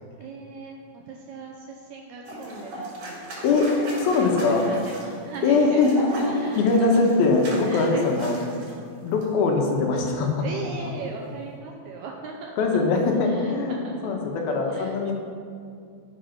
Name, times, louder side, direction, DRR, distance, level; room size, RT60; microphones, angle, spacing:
voice 1, 0.2-3.6 4.1-5.8 6.2-6.9 7.6-8.0 8.3-8.9 10.4-12.8 13.1-14.2 14.7-14.9, right 4 dB, 75° right, 0 dB, 1.8 m, -38 dB
sound 1, 2.2-8.7 9.1-9.3, right 1 dB, 60° right, 4.4 m, -37 dB
voice 2, 3.4-4.7 5.4-8.4 9.0-10.5 12.6-15.1, left 3 dB, 85° left, 1 dB, 3.2 m, -22 dB
13.0 x 6.7 x 5.8 m, 2.5 s
omnidirectional pair, 4.2 m